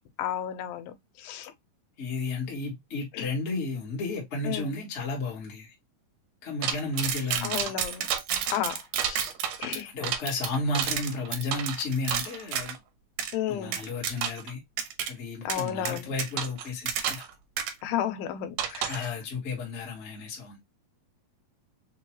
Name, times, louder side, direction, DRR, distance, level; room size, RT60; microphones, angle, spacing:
voice 1, 0.2-1.5 3.1-3.3 4.5-4.7 7.4-8.1 8.5-9.3 9.6-9.9 13.3-13.8 15.5-16.1 17.8-19.2, left 10 dB, 85° left, 2.5 m, -32 dB
voice 2, 2.0-5.7 6.4-7.7 9.9-12.8 13.5-14.6 15.1-17.3 18.9-20.6, left 3 dB, 60° left, 0.7 m, -33 dB
sound 1, 6.6-12.8 13.2-13.3 13.7-14.5 14.8-15.1 15.5-17.3 17.6-17.7 18.6-19.1, right 9 dB, 75° right, 1.9 m, -30 dB
5.8 x 2.3 x 2.9 m
omnidirectional pair, 4.1 m